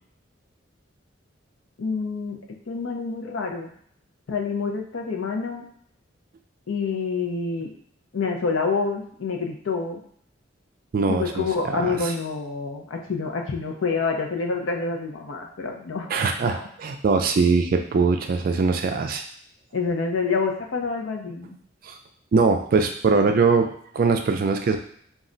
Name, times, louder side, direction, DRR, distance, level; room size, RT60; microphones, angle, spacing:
voice 1, 1.8-2.4 2.7-3.7 4.3-5.7 6.7-7.7 8.1-10.0 11.1-16.1 16.5-16.7 19.7-21.6, left 4 dB, 85° left, 1 dB, 0.5 m, -27 dB
voice 2, 10.9-11.5 11.7-12.0 16.1-19.2 21.8-21.9 22.3-23.7 23.9-24.8, right 4 dB, 50° right, 5 dB, 0.3 m, -21 dB
2.3 x 2.1 x 3.7 m, 0.63 s
head